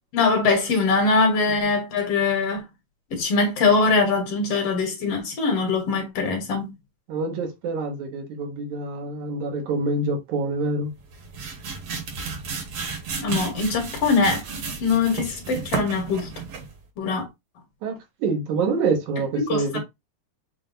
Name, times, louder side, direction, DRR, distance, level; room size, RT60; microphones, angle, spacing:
voice 1, 0.1-2.6 3.1-6.7 13.2-14.4 14.8-16.3 17.0-17.3 19.4-19.8, left 4 dB, 60° left, 2.0 m, -22 dB
voice 2, 7.1-10.9 17.8-19.8, right 3 dB, 80° right, 2.5 m, -26 dB
sound 1, 11.0-16.8, right 5 dB, 60° right, 2.1 m, -33 dB
6.5 x 2.2 x 3.8 m
omnidirectional pair, 3.3 m